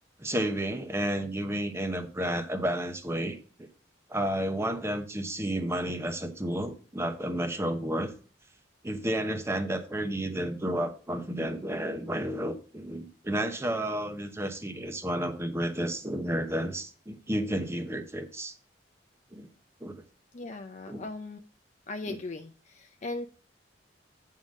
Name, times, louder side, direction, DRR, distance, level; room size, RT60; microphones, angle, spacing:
voice 1, 0.2-3.7 4.1-8.1 8.8-18.5 19.3-19.5 19.8-20.0 20.9-21.0 22.0-22.2, right 1 dB, 15° right, 0.9 m, -31 dB
voice 2, 20.3-21.4 21.9-23.3, left 2 dB, 40° left, 0.5 m, -38 dB
9.0 x 3.7 x 6.3 m
head